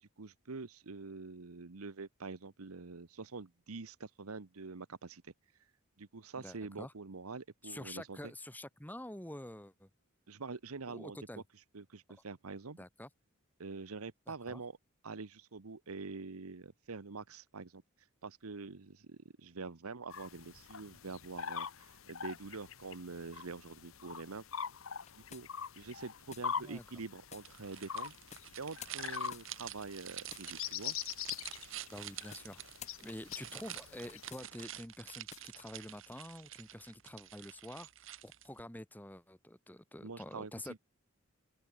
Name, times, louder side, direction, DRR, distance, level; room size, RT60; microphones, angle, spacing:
voice 1, 0.0-5.3 6.0-8.3 10.3-11.2 11.7-12.8 13.6-14.8 15.0-17.8 18.2-24.4 25.1-25.5 25.8-28.1 28.6-31.0 40.0-40.8, right 4 dB, 90° right, 1.0 m, -46 dB
voice 2, 6.4-6.9 7.6-9.9 10.9-11.4 12.8-13.1 14.5-14.6 26.6-26.8 31.9-32.6 33.0-37.9 38.2-40.8, left 1 dB, 10° left, 1.8 m, -47 dB
sound 1, 20.1-34.3, left 7 dB, 70° left, 1.0 m, -44 dB
sound 2, 24.9-25.8 26.3-26.5 27.3-27.5 28.3-28.5 28.8-29.8 30.3-30.5 31.3-31.5 32.3-32.5 32.8-34.6 35.1-35.6, left 8 dB, 30° left, 1.0 m, -52 dB
Opening A Package, 27.4-38.6, right 12 dB, 60° right, 1.6 m, -48 dB
open air
head